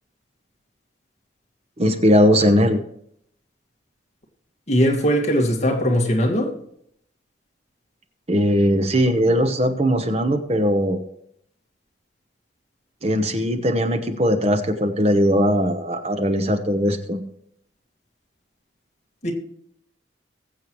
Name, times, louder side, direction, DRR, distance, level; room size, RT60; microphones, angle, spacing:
voice 1, 1.8-2.8 8.3-11.0 13.0-17.2, equal, 35° right, 1.0 m, -19 dB
voice 2, 4.7-6.5 19.2-19.3, equal, 35° left, 1.9 m, -20 dB
21.0 x 7.8 x 3.1 m
head